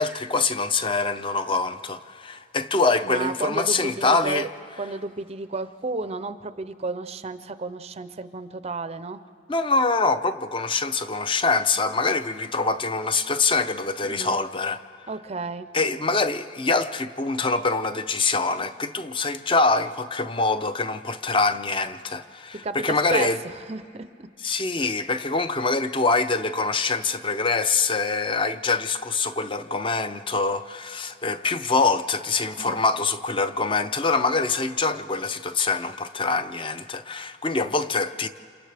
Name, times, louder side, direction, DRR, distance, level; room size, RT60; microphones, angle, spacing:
voice 1, 0.0-4.5 9.5-14.8 15.7-23.4 24.4-38.3, left 3 dB, 25° left, 0.6 m, -24 dB
voice 2, 3.0-4.5 4.8-9.2 14.0-14.4 15.1-15.7 22.5-24.3 32.7-32.8, right 3 dB, 30° right, 0.5 m, -32 dB
29.5 x 28.0 x 3.4 m
head